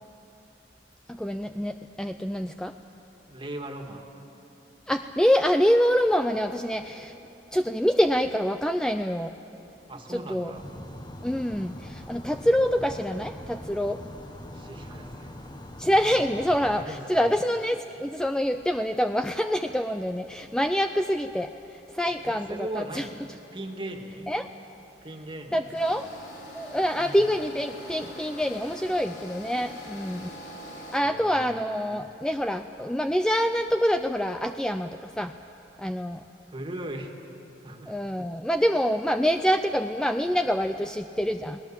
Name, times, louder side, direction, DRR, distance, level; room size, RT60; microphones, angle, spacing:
voice 1, 1.1-2.7 4.9-7.1 7.5-9.3 10.1-10.5 11.2-14.0 15.8-23.1 24.3-24.5 25.5-26.1 26.5-30.3 30.9-35.4 35.8-36.2 37.9-41.6, equal, 5° left, 7 dB, 0.4 m, -26 dB
voice 2, 3.3-4.1 9.9-10.6 14.5-15.5 16.8-17.3 22.3-23.2 23.5-24.3 25.0-25.8 27.0-27.2 31.0-31.6 36.5-37.1 37.6-38.0, right 1 dB, 30° right, 3 dB, 1.9 m, -38 dB
sound 1, 10.5-16.8, left 1 dB, 25° left, 1.2 m, -42 dB
sound 2, 25.7-31.0, equal, 75° left, 4.0 m, -43 dB
29.5 x 19.0 x 7.4 m, 3.0 s
head